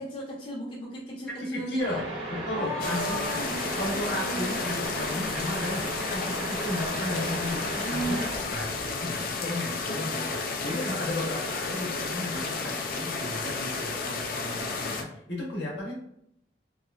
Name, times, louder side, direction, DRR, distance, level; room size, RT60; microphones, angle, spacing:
voice 1, 0.0-2.0 2.5-4.9 7.8-8.3, right 1 dB, 30° left, -6 dB, 0.8 m, -35 dB
voice 2, 1.3-3.4 3.8-8.7 9.0-16.0, left 1 dB, 65° left, -3 dB, 0.9 m, -34 dB
sound 1, 1.8-8.4, right 1 dB, 85° right, 1.4 m, -36 dB
sound 2, 2.8-15.0, left 4 dB, 50° left, 0.4 m, -32 dB
2.9 x 2.4 x 2.4 m, 0.76 s
head